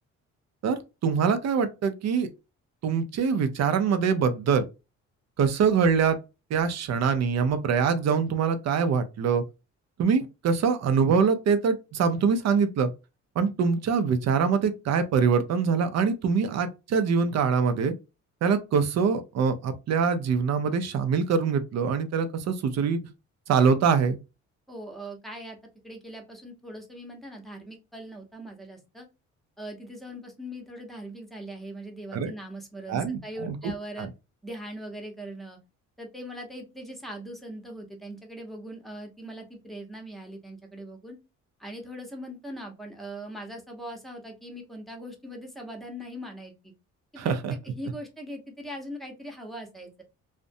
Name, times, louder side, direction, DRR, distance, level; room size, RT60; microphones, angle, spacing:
voice 1, 0.6-2.3 2.8-4.6 5.4-6.2 6.5-9.4 10.0-12.9 13.4-17.9 18.4-23.0 23.5-24.2 32.1-32.3 32.9-33.6 34.0-34.1 47.2-47.5, right 6 dB, 60° right, 0.6 m, -24 dB
voice 2, 24.7-25.6 25.8-29.1 29.6-34.1 34.4-35.6 36.0-41.2 41.6-46.7 47.1-50.0, equal, ahead, 0.8 m, -40 dB
2.5 x 2.1 x 2.5 m
cardioid pair, 90°, 30 cm